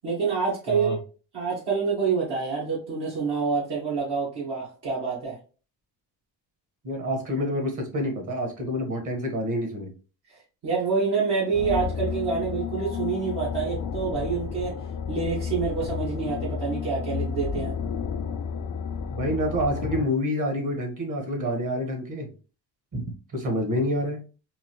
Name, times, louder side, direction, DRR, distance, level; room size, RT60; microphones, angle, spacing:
voice 1, 0.0-1.0 1.3-5.4 10.3-14.8 15.1-17.7, right 5 dB, 65° right, -6 dB, 1.7 m, -27 dB
voice 2, 6.8-9.9 19.1-22.3 22.9-23.0 23.3-24.2, equal, 45° right, 4 dB, 1.4 m, -27 dB
sound 1, 11.5-20.0, left 6 dB, 50° left, 0.5 m, -31 dB
3.9 x 2.6 x 3.0 m, 0.36 s
cardioid pair, 105°, 43 cm